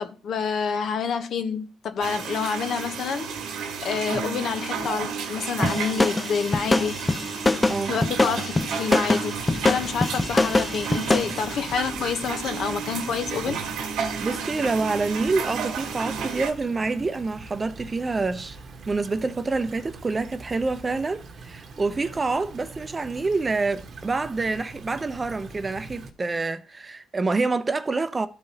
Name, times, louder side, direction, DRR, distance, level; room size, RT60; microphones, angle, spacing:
voice 1, 0.0-3.3 3.8-7.0 7.9-8.5 8.8-13.6, left 6 dB, 65° left, 1.0 m, -28 dB
sound 1, 2.0-16.5, right 6 dB, 90° right, 1.6 m, -32 dB
sound 2, 5.6-11.4, left 2 dB, 20° left, 0.4 m, -23 dB
Stream / Trickle dribble, 9.4-26.1, right 3 dB, 60° right, 1.1 m, -43 dB
voice 2, 14.0-18.6 18.9-28.3, right 3 dB, 30° right, 0.7 m, -27 dB
13.0 x 4.7 x 2.8 m
cardioid pair, 90°, 0 cm